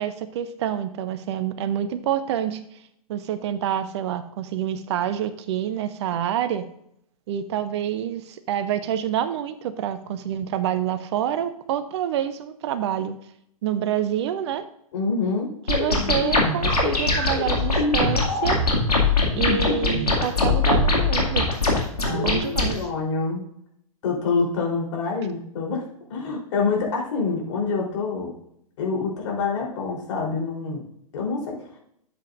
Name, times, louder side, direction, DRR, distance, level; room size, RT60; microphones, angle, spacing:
voice 1, 0.0-2.6 3.1-6.6 7.3-13.2 13.6-14.6 15.7-18.6 19.4-21.5 22.1-22.8, right 10 dB, 45° right, 12 dB, 0.7 m, -27 dB
voice 2, 14.9-15.5 22.0-23.4 24.0-25.8 26.1-28.3 28.8-30.8 31.1-31.6, left 4 dB, 55° left, -2 dB, 3.8 m, -26 dB
sound 1, 15.7-22.7, left 3 dB, 85° left, 2.3 m, -21 dB
12.0 x 7.7 x 2.6 m, 0.73 s
figure-of-eight pair, 110°, 19 cm